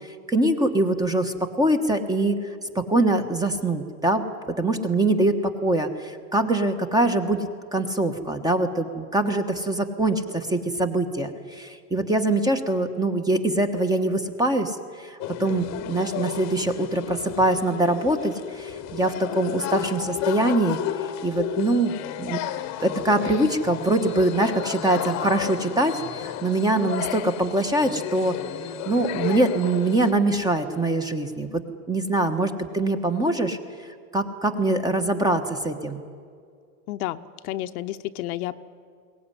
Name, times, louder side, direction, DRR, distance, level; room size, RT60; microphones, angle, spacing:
voice 1, 0.3-2.4 2.7-4.2 4.6-14.8 15.0-20.8 21.2-21.9 22.2-22.4 22.8-28.3 28.8-31.5 31.9-33.6 34.1-36.0, right 2 dB, 10° right, 8 dB, 1.2 m, -23 dB
sound 1, 15.2-30.1, left 11 dB, 35° left, 1.1 m, -32 dB
voice 2, 36.9-38.6, left 14 dB, 70° left, 9 dB, 1.0 m, -31 dB
22.0 x 18.0 x 10.0 m, 2.2 s
supercardioid pair, 140°, 46 cm